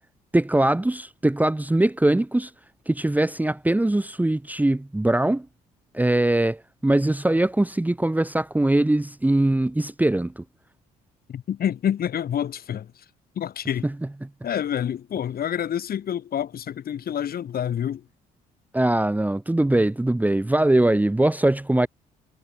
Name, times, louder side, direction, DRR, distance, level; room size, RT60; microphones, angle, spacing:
voice 1, 0.3-2.5 2.9-5.5 5.9-10.4 13.8-13.9 14.2-14.3 18.7-21.9, right 1 dB, 10° right, 1.1 m, -21 dB
voice 2, 11.3-12.9 13.4-13.9 14.4-18.0, left 9 dB, 60° left, 7.8 m, -27 dB
hypercardioid pair, 60°, 18 cm